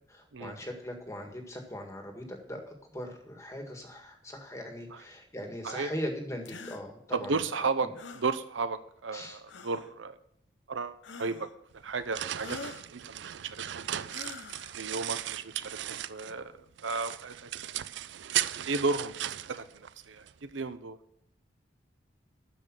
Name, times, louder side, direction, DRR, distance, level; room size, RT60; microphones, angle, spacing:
voice 1, 0.1-7.4 7.8-7.9 9.1-9.4, equal, 15° left, 3 dB, 1.8 m, -40 dB
sound 1, 6.5-6.8 8.0-8.3 9.5-9.9 11.0-11.6 12.4-12.9 14.1-14.8, left 4 dB, 75° left, 0.8 m, -44 dB
voice 2, 7.1-7.9 8.1-10.2 10.7-11.5 11.8-13.9 14.8-15.8 16.1-16.5 16.8-17.8 18.7-19.1 19.5-21.0, right 4 dB, 90° right, 11 dB, 0.8 m, -34 dB
sound 2, 11.7-16.4 16.8-20.3, right 12 dB, 70° right, 0.4 m, -37 dB
12.5 x 5.4 x 7.5 m, 0.71 s
head